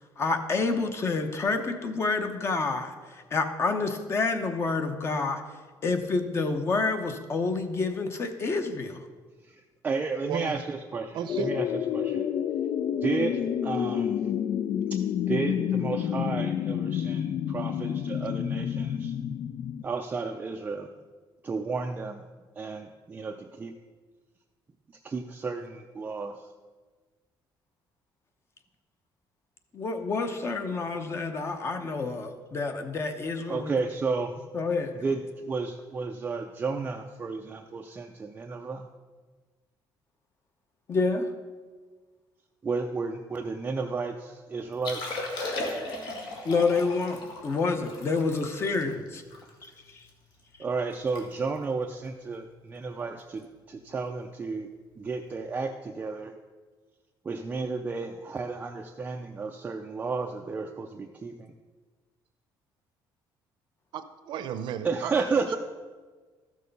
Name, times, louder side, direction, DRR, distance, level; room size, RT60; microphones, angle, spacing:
voice 1, 0.2-5.4 5.8-9.0 29.7-33.7 34.5-34.9 40.9-41.3 46.4-49.2 49.6-50.0, left 3 dB, 30° left, 7 dB, 0.8 m, -28 dB
voice 2, 9.5-12.3 13.0-14.2 14.9-15.0 15.3-19.2 19.8-20.9 21.4-22.2 22.6-23.7 25.0-26.4 33.5-34.3 35.0-38.9 42.6-45.2 50.6-54.7 55.0-56.3 57.2-60.9 61.2-61.3 64.8-65.6, right 4 dB, 20° right, 3 dB, 0.4 m, -32 dB
voice 3, 11.1-11.5 63.9-65.1, right 9 dB, 65° right, 11 dB, 0.7 m, -34 dB
sound 1, 11.3-19.8, left 9 dB, 50° left, 0.4 m, -29 dB
Liquid, 44.7-50.1 50.6-50.7 50.9-51.2 51.5-51.8 52.4-52.6 54.0-54.1, left 2 dB, 65° left, 1.9 m, -37 dB
13.0 x 6.5 x 5.3 m, 1.4 s
cardioid pair, 165°, 8 cm